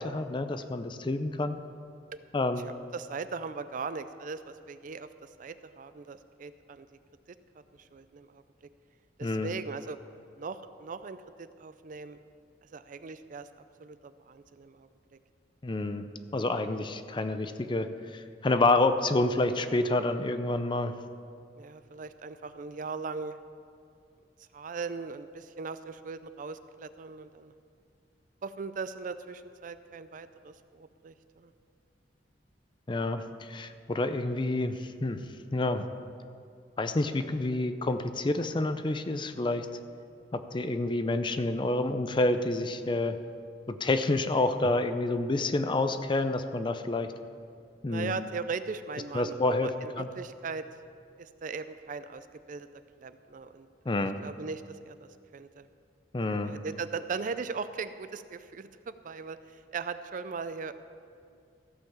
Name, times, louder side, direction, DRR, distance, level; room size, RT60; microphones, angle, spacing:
voice 1, 0.0-1.6 2.3-2.7 9.2-9.5 15.6-16.0 16.3-20.9 32.9-35.2 35.5-35.9 36.8-39.7 40.3-43.2 43.7-47.1 47.8-48.2 49.1-49.7 50.0-50.1 53.9-54.2 56.1-56.5, left 2 dB, 25° left, 9 dB, 0.5 m, -28 dB
voice 2, 2.6-6.9 7.8-8.4 9.2-10.0 10.4-12.2 12.7-13.5 13.8-15.2 21.6-23.4 24.5-27.5 28.4-31.5 47.9-50.6 51.2-52.7 53.0-54.0 54.2-55.7 56.4-60.7, right 4 dB, 50° right, 12 dB, 0.4 m, -39 dB
15.0 x 5.7 x 7.0 m, 2.3 s
head